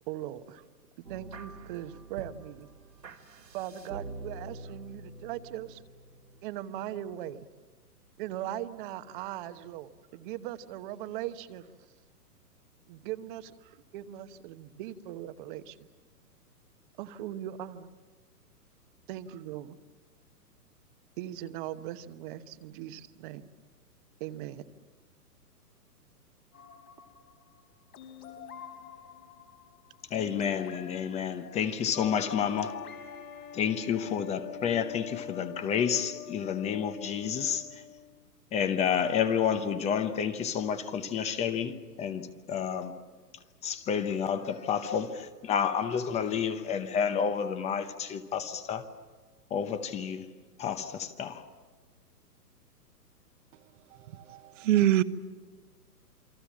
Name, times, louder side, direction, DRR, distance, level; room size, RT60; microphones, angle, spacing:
voice 1, 0.1-0.6 1.0-2.7 3.5-5.8 6.4-7.4 8.2-11.7 12.9-15.9 17.0-17.9 19.1-19.8 21.2-23.5 24.2-24.7, right 12 dB, 30° right, 1.1 m, -39 dB
sound 1, 1.0-7.0, right 3 dB, 90° right, 2.8 m, -46 dB
sound 2, 26.5-34.3, left 8 dB, 70° left, 3.9 m, -49 dB
voice 2, 30.1-32.8 33.5-37.8 38.5-42.9 43.6-48.9 49.5-50.3 50.6-51.4, left 7 dB, 15° left, 0.8 m, -30 dB
sound 3, 31.9-38.2, left 9 dB, 40° left, 3.1 m, -44 dB
voice 3, 54.3-55.0, right 13 dB, 50° right, 1.2 m, -23 dB
28.5 x 24.0 x 7.3 m
hypercardioid pair, 130°, 48 cm